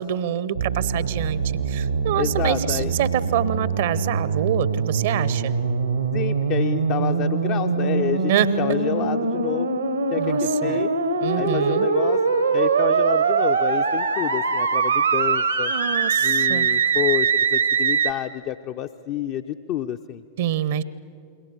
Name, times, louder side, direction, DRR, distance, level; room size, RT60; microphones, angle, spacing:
voice 1, 0.0-5.5 8.3-8.5 10.2-10.9 11.2-11.9 15.7-16.7 20.4-20.8, right 10 dB, 55° right, 18 dB, 0.8 m, -26 dB
sound 1, 0.5-18.1, right 5 dB, 80° right, 1.2 m, -23 dB
voice 2, 2.2-2.9 6.1-9.8 10.1-10.9 11.4-12.2 12.5-15.7 16.2-20.2, left 11 dB, 40° left, 7 dB, 0.6 m, -28 dB
28.5 x 22.0 x 6.8 m, 2.4 s
figure-of-eight pair, 90°, 0 cm